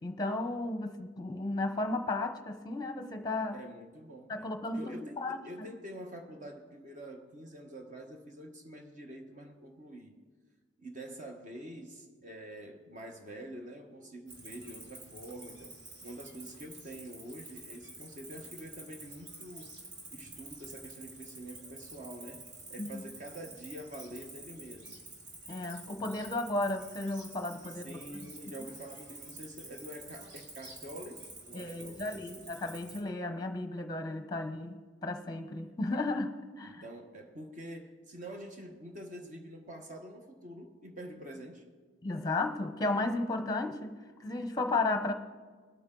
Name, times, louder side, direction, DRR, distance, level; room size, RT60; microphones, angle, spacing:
voice 1, 0.0-3.6 4.3-5.4 22.8-23.0 25.5-28.3 31.5-36.8 42.0-45.1, left 2 dB, 20° left, 7 dB, 0.8 m, -34 dB
voice 2, 3.5-4.5 4.7-10.2 10.8-15.8 16.0-19.8 20.1-25.1 27.7-32.5 36.6-41.6, right 1 dB, 40° right, 3 dB, 1.2 m, -46 dB
Cricket, 14.3-33.0, right 2 dB, 60° right, 2.1 m, -49 dB
21.0 x 8.7 x 3.8 m, 1.5 s
head